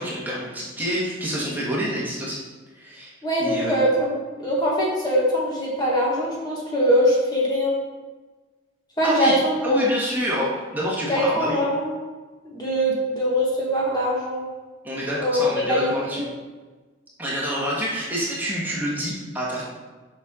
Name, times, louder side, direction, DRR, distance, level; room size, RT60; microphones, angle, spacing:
voice 1, 0.0-2.4 2.7-3.1 3.4-3.8 9.0-11.6 14.8-16.3 17.2-19.6, equal, 10° right, -6 dB, 1.4 m, -27 dB
voice 2, 3.2-7.8 9.0-9.8 11.1-11.9 12.4-14.4 15.2-15.4 15.7-16.2, equal, 20° left, -5 dB, 1.4 m, -22 dB
7.3 x 5.6 x 3.7 m, 1.3 s
head